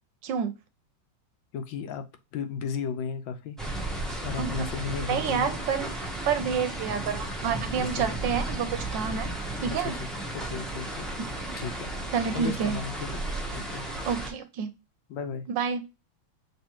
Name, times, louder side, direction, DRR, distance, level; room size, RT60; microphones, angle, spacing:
voice 1, 1.5-2.0 2.3-3.6 4.2-5.5 7.8-8.1 9.8-10.1 10.3-11.1 11.6-11.9 12.3-13.3 13.5-13.8 15.1-15.4, left 6 dB, 80° left, 1.4 m, -34 dB
sound 1, 3.6-14.3, right 1 dB, ahead, 0.4 m, -34 dB
voice 2, 5.1-9.3 9.6-10.0 12.1-12.8 14.1-14.7 15.5-15.8, right 7 dB, 70° right, 1.2 m, -29 dB
5.5 x 3.3 x 2.9 m
omnidirectional pair, 2.2 m